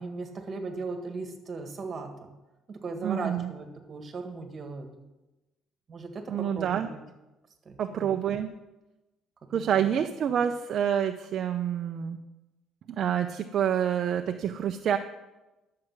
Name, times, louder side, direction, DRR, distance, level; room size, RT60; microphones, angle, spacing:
voice 1, 0.0-2.3 2.7-4.9 5.9-7.0 7.7-8.1 9.5-9.9, right 3 dB, 30° right, 5 dB, 1.8 m, -37 dB
voice 2, 3.0-3.5 6.3-6.9 7.8-8.5 9.5-12.2 12.9-15.0, right 9 dB, 50° right, 6 dB, 0.5 m, -27 dB
11.0 x 7.6 x 6.0 m, 1.0 s
cardioid pair, 140°, 0 cm